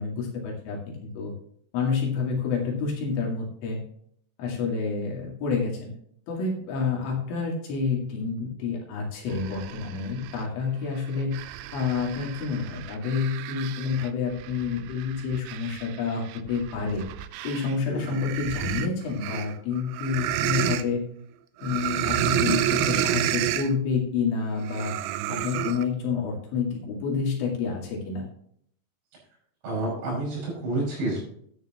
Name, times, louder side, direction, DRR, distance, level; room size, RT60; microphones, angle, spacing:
voice 1, 0.0-1.3 1.7-3.8 4.4-5.9 6.3-11.4 11.7-17.0 17.4-21.0 21.6-25.0 25.3-28.2, left 5 dB, 80° left, -2 dB, 4.6 m, -28 dB
sound 1, 9.3-10.4 11.0-17.8 18.0-20.8 21.6-23.7 24.6-25.9, right 12 dB, 80° right, 3.0 m, -30 dB
voice 2, 17.9-18.2 29.6-31.2, right 2 dB, 65° right, -3 dB, 7.5 m, -29 dB
13.0 x 9.5 x 2.9 m, 0.65 s
omnidirectional pair, 5.5 m